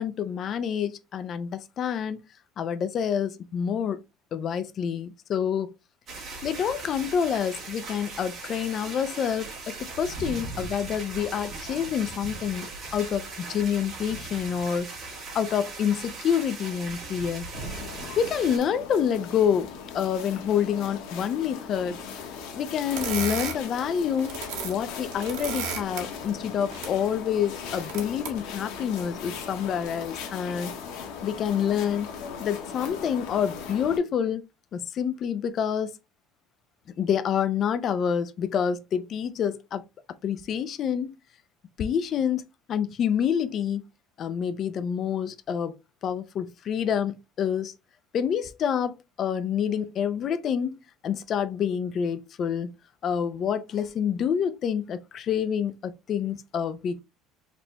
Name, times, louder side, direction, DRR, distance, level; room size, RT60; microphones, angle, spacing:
voice 1, 0.0-2.2 2.6-4.0 4.3-5.8 6.4-12.7 12.9-17.5 18.2-22.0 22.5-30.7 31.2-32.1 32.4-34.4 34.7-35.9 37.0-39.8 40.2-41.1 41.8-42.4 42.7-43.8 44.2-45.7 46.0-47.8 48.1-50.8 51.0-52.7 53.0-57.0, left 8 dB, 35° left, 0.4 m, -27 dB
sound 1, 6.1-18.6, right 3 dB, 30° right, 2.1 m, -39 dB
sound 2, 17.5-34.0, left 6 dB, 70° left, 1.3 m, -39 dB
sound 3, 22.9-23.5 24.1-24.7 25.0-26.0 26.6-26.9 27.6-28.3 29.0-29.1 29.9-30.0, right 6 dB, 80° right, 1.6 m, -33 dB
4.2 x 3.3 x 2.8 m
cardioid pair, 160°, 0 cm